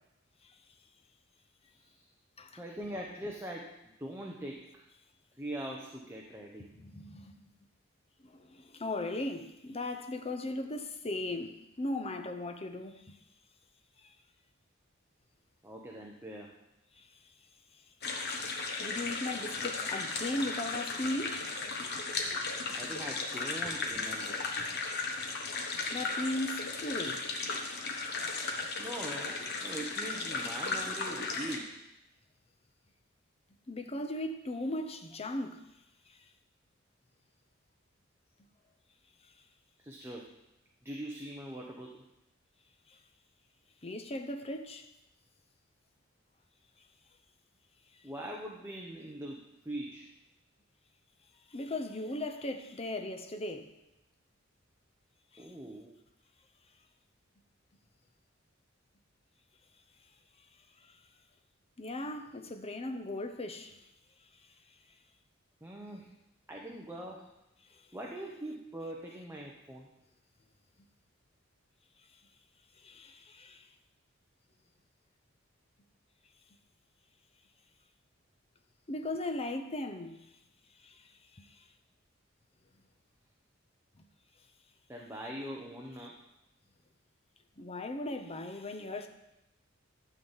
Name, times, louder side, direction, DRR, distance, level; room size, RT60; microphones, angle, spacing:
voice 1, 1.8-2.1 2.6-4.8 5.4-6.6 12.2-12.3 15.6-16.5 22.7-24.4 28.8-31.7 39.8-40.4 40.8-42.0 48.0-50.1 55.4-55.9 65.6-66.1 66.5-67.3 67.9-69.9 84.9-86.1 88.3-88.4, right 1 dB, 10° right, 0.9 m, -42 dB
voice 2, 6.8-7.4 8.2-13.2 17.0-17.1 18.8-21.5 25.9-27.3 33.7-35.6 43.8-44.9 51.5-53.7 55.3-55.4 61.8-63.8 72.8-73.7 78.9-80.2 80.8-80.9 81.4-81.5 87.6-89.1, left 1 dB, 30° left, 0.8 m, -37 dB
sound 1, 18.0-31.6, left 3 dB, 55° left, 1.3 m, -36 dB
12.0 x 4.1 x 7.2 m
head